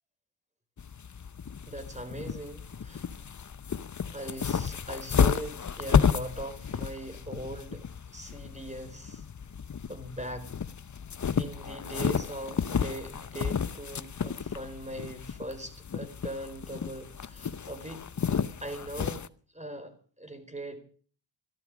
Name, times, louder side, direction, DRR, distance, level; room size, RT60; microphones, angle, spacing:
sound 1, 0.8-19.3, left 7 dB, 40° left, 0.8 m, -32 dB
voice 1, 1.7-3.1 4.1-9.2 9.9-10.5 11.4-18.1 18.6-19.3 19.5-20.8, right 1 dB, 15° right, 8 dB, 4.3 m, -40 dB
14.0 x 12.5 x 6.2 m, 0.43 s
cardioid pair, 60°, 46 cm